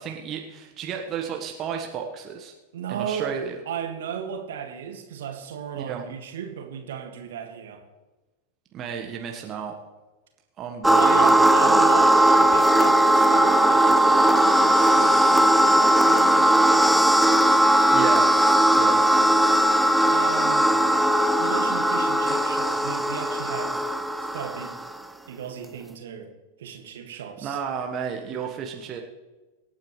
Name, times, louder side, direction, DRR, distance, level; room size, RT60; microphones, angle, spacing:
voice 1, 0.0-2.5 2.9-3.6 5.8-6.0 8.7-9.7 10.6-11.8 17.9-18.3 18.7-19.0 27.4-29.0, right 7 dB, 30° right, 2 dB, 1.4 m, -32 dB
voice 2, 2.7-3.3 3.7-7.8 10.9-17.3 20.1-20.7 21.4-23.9 24.3-24.8 25.3-26.3 26.6-27.6, right 8 dB, 60° right, 5 dB, 2.0 m, -35 dB
sound 1, 10.8-25.0, right 1 dB, 5° right, 0.7 m, -18 dB
25.0 x 9.3 x 3.2 m, 1.2 s
figure-of-eight pair, 90°, 0 cm